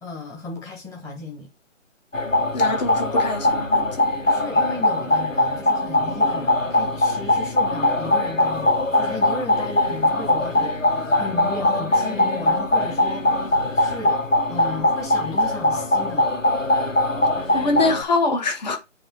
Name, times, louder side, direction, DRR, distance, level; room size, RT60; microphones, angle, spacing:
voice 1, 0.0-1.5 4.2-14.2 14.5-16.3, left 3 dB, 10° left, 2.0 m, -35 dB
sound 1, 2.1-18.0, left 1 dB, 90° left, 2.1 m, -21 dB
voice 2, 2.5-4.1 17.5-18.8, left 3 dB, 35° left, 2.2 m, -24 dB
8.9 x 3.5 x 6.3 m
figure-of-eight pair, 150°, 38 cm